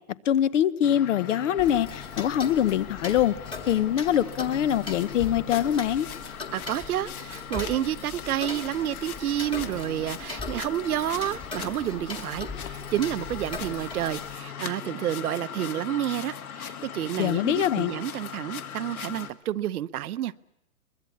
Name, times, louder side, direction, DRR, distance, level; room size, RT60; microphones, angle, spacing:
voice 1, 0.2-3.3 3.7-6.1 17.2-17.9, left 10 dB, 55° left, 18 dB, 1.0 m, -24 dB
sound 1, 0.8-19.3, left 8 dB, 75° left, 1.9 m, -39 dB
Tick-tock, 1.6-14.3, left 3 dB, 10° left, 1.7 m, -40 dB
voice 2, 6.5-20.3, right 12 dB, 75° right, 14 dB, 0.9 m, -30 dB
23.5 x 22.0 x 8.5 m, 0.88 s
hypercardioid pair, 165°, 44 cm